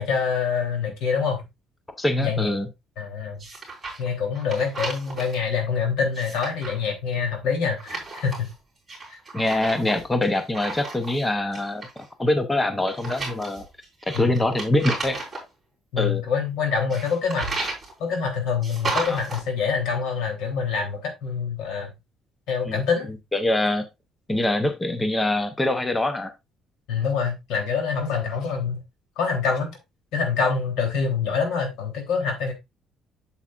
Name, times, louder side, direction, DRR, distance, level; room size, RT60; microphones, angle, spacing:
voice 1, 0.0-1.4 2.2-2.5 3.0-3.4 4.0-8.5 9.1-9.2 14.1-14.4 15.9-17.5 18.0-21.9 22.5-23.1 26.9-28.8 29.2-29.8 30.1-32.5, left 5 dB, 85° left, 3.2 m, -25 dB
voice 2, 2.0-2.7 9.3-13.6 14.1-15.2 16.0-16.2 18.9-19.2 22.7-22.8 23.3-23.9 24.3-26.3, left 1 dB, 10° left, 0.7 m, -24 dB
sound 1, 3.4-4.1 4.3-5.4 6.0-6.8 7.8-8.5 8.9-11.2 11.5-12.0 12.9-15.4 16.9-17.9 18.6-19.4, right 3 dB, 10° right, 3.5 m, -33 dB
8.1 x 7.1 x 2.4 m
cardioid pair, 170°, 0 cm